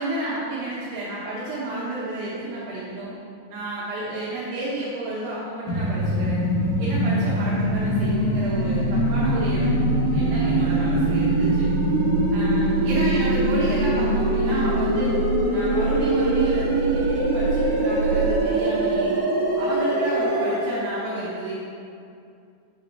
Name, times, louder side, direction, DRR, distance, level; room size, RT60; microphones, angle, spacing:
voice 1, 0.0-3.1 3.5-6.4 6.8-11.7 12.3-15.1 15.5-19.2 19.6-21.5, right 2 dB, 70° right, -8 dB, 3.2 m, -31 dB
sound 1, 5.7-20.6, right 1 dB, 35° right, 1.8 m, -23 dB
sound 2, 7.8-18.4, right 4 dB, 50° left, 4.1 m, -28 dB
15.0 x 7.2 x 3.2 m, 2.5 s
omnidirectional pair, 5.0 m